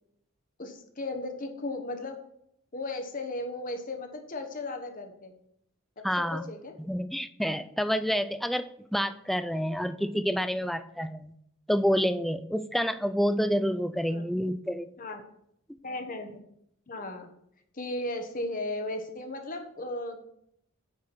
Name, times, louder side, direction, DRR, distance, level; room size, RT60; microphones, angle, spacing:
voice 1, 0.6-2.2 2.7-5.3 6.2-6.7 14.1-14.2 15.0-15.2 15.8-16.4 16.9-17.3 17.7-20.2, left 2 dB, 40° left, 5 dB, 1.2 m, -36 dB
voice 2, 6.0-6.5 6.8-11.3 11.7-14.9, equal, ahead, 13 dB, 0.3 m, -28 dB
9.2 x 4.9 x 6.0 m, 0.73 s
head